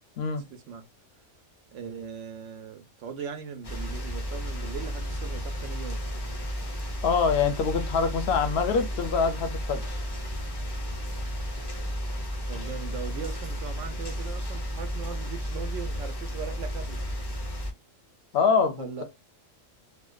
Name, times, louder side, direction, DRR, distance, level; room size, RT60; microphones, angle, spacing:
voice 1, 0.5-0.8 1.7-6.0 12.5-17.1 18.4-19.0, right 7 dB, 70° right, 0.9 m, -39 dB
sound 1, 3.6-17.7, equal, 40° left, 0.3 m, -33 dB
voice 2, 7.0-9.9 18.3-19.0, left 5 dB, 60° left, 0.7 m, -25 dB
2.6 x 2.1 x 2.2 m
omnidirectional pair, 1.3 m